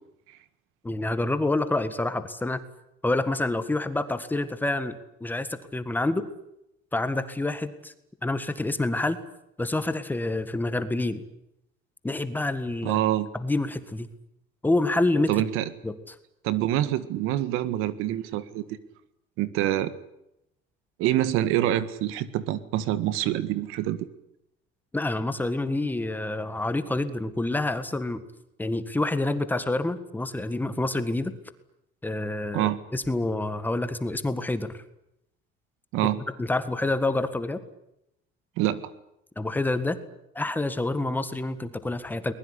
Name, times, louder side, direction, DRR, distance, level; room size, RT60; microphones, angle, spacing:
voice 1, 0.8-2.6 3.0-4.9 5.2-6.3 6.9-7.9 8.2-9.2 9.6-11.2 12.0-13.0 13.3-14.1 14.6-15.4 15.8-16.1 24.9-28.2 28.6-31.3 32.0-34.8 36.4-37.6 39.3-40.0 40.3-42.3, left 2 dB, 10° left, 11 dB, 1.7 m, -27 dB
voice 2, 12.8-13.3 15.3-15.7 16.4-18.8 19.4-19.9 21.0-24.1 32.5-32.8 35.9-36.2 38.6-38.9, right 13 dB, 90° right, 14 dB, 1.8 m, -26 dB
22.0 x 20.5 x 10.0 m, 0.83 s
cardioid pair, 155°, 21 cm